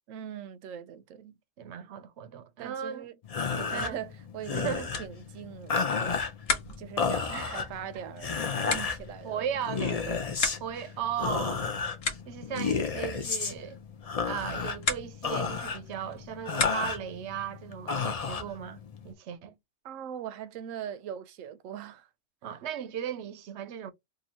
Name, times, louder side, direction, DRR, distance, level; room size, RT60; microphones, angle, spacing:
voice 1, 0.1-1.4 2.6-3.1 3.5-4.7 5.0-6.2 6.8-10.3 19.8-22.1, right 9 dB, 90° right, 1.0 m, -41 dB
voice 2, 1.6-3.1 3.7-4.0 4.5-4.9 7.3-7.7 9.2-10.1 10.6-11.8 12.3-13.8 14.2-19.6 22.4-23.9, right 9 dB, 70° right, 0.8 m, -36 dB
sound 1, 3.2-19.1, left 5 dB, 40° left, 0.6 m, -33 dB
sound 2, 4.8-17.2, left 4 dB, 80° left, 1.3 m, -38 dB
2.7 x 2.7 x 4.1 m
omnidirectional pair, 1.3 m